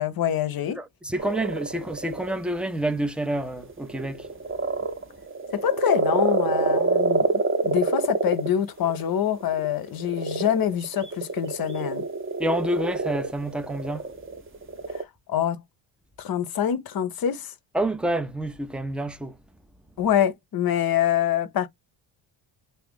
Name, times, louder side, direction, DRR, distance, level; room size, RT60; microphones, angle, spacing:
voice 1, 0.0-0.8 5.5-7.3 7.6-12.1 14.9-15.6 16.2-17.5 20.0-21.7, left 10 dB, 45° left, 0.7 m, -25 dB
voice 2, 0.8-4.3 12.4-14.0 17.7-19.4, right 1 dB, ahead, 0.5 m, -28 dB
sound 1, 1.2-2.4 3.3-15.0, right 3 dB, 25° right, 0.8 m, -26 dB
2.7 x 2.4 x 3.4 m
cardioid pair, 90°, 50 cm